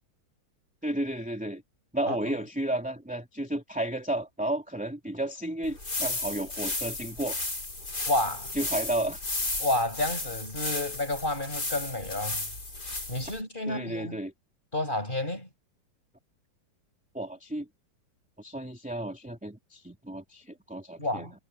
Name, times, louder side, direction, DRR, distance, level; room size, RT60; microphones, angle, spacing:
voice 1, 0.8-1.6 1.9-7.4 8.5-9.3 13.7-14.3 17.1-17.7 18.4-21.3, right 1 dB, 5° right, 3.0 m, -32 dB
sound 1, 5.6-13.4, left 2 dB, 45° left, 6.3 m, -34 dB
voice 2, 8.1-8.5 9.6-12.5 13.1-14.2 14.7-15.5 21.0-21.3, left 2 dB, 20° left, 7.8 m, -30 dB
omnidirectional pair, 2.3 m